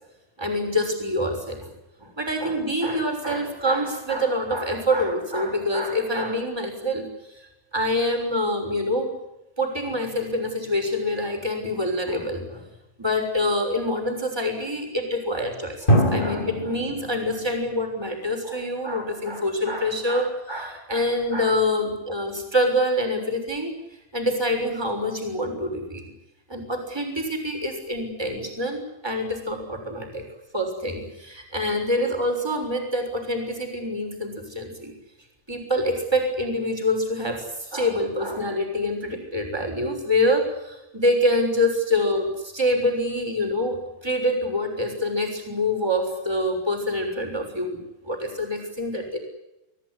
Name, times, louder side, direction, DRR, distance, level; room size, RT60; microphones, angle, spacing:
voice 1, 0.4-1.7 2.0-7.5 7.7-9.1 9.6-12.6 13.0-23.7 24.1-26.1 26.5-30.2 30.5-34.9 35.5-49.2, left 1 dB, 5° right, 4 dB, 6.2 m, -26 dB
sound 1, 9.8-11.2 15.9-17.7, equal, 15° left, 3.1 m, -25 dB
27.0 x 17.5 x 10.0 m, 0.93 s
omnidirectional pair, 4.3 m